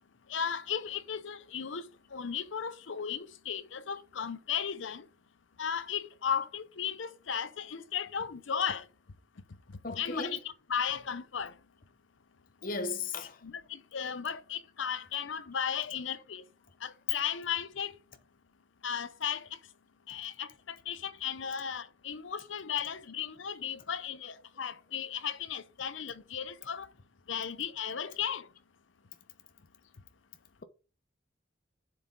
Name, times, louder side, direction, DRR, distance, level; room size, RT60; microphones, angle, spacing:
voice 1, 0.3-1.8 2.1-5.1 5.6-8.8 9.9-10.4 10.7-11.5 13.4-16.4 16.8-17.9 18.8-19.5 20.1-26.9 27.3-28.5, left 7 dB, 85° left, 0.7 m, -35 dB
voice 2, 9.8-10.4 12.6-13.4, left 4 dB, 45° left, 0.9 m, -35 dB
7.3 x 6.8 x 3.9 m
head